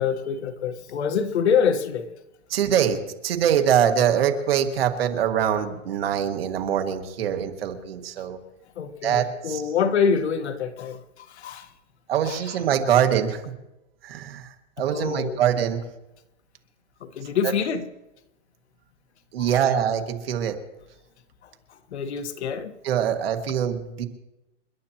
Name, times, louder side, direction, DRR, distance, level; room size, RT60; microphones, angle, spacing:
voice 1, 0.0-2.1 8.8-11.7 12.2-12.6 14.9-15.4 17.0-17.8 19.4-19.6 21.9-22.7, left 6 dB, 60° left, 1.5 m, -26 dB
voice 2, 2.5-8.4 9.0-9.6 12.1-13.5 14.0-14.5 14.8-15.8 19.3-20.6 22.8-24.0, right 9 dB, 50° right, 2.0 m, -23 dB
29.5 x 11.5 x 3.0 m
hypercardioid pair, 170°, 37 cm